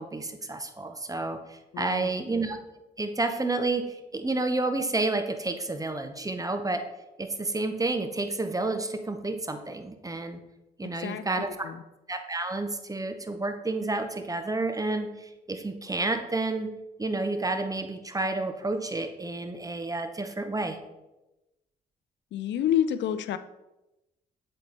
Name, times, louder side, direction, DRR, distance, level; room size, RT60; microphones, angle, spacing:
voice 1, 0.0-2.6 3.0-6.9 7.2-10.4 10.8-11.7 12.1-20.8, right 2 dB, 15° right, 7 dB, 0.9 m, -30 dB
voice 2, 1.7-2.1 10.8-11.8 22.3-23.4, left 10 dB, 60° left, 13 dB, 0.5 m, -29 dB
7.9 x 4.3 x 3.3 m, 0.99 s
hypercardioid pair, 45°, 21 cm